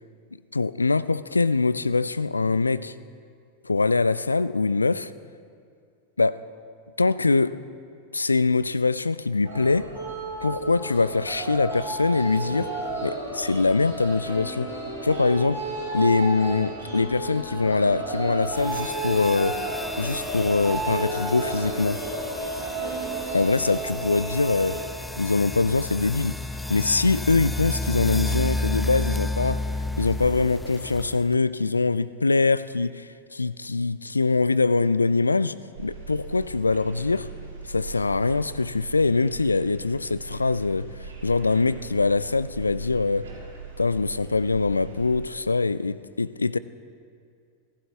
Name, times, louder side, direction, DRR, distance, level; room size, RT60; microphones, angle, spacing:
voice 1, 0.5-2.9 3.6-5.1 6.2-6.4 7.0-7.6 8.1-9.9 10.4-12.7 13.0-14.7 15.0-15.6 15.9-19.6 20.0-22.0 23.3-24.8 25.2-26.4 26.7-29.7 30.0-37.3 37.6-43.3 43.8-46.6, left 3 dB, 80° left, 0.4 m, -23 dB
sound 1, 9.4-24.8, right 3 dB, 85° right, 5.0 m, -32 dB
sound 2, 18.5-31.4, left 2 dB, 5° left, 0.5 m, -32 dB
sound 3, 35.7-45.2, right 5 dB, 65° right, 3.3 m, -40 dB
27.5 x 15.0 x 3.4 m
figure-of-eight pair, 90°, 0 cm